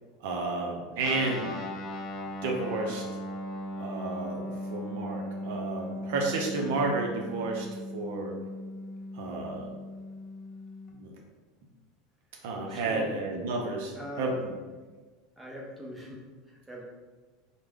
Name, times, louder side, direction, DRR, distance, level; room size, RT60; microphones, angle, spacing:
voice 1, 0.2-1.5 2.4-3.0 3.8-7.7 7.9-8.3 9.1-9.7 10.9-11.1 12.4-14.5, right 3 dB, 70° right, 0 dB, 0.5 m, -31 dB
Guitar, 1.0-10.9, left 1 dB, 45° left, 0.5 m, -38 dB
voice 2, 12.3-13.1 13.9-14.4 15.4-16.8, left 1 dB, 10° right, -3 dB, 0.9 m, -42 dB
3.2 x 2.0 x 3.5 m, 1.3 s
hypercardioid pair, 85°, 0 cm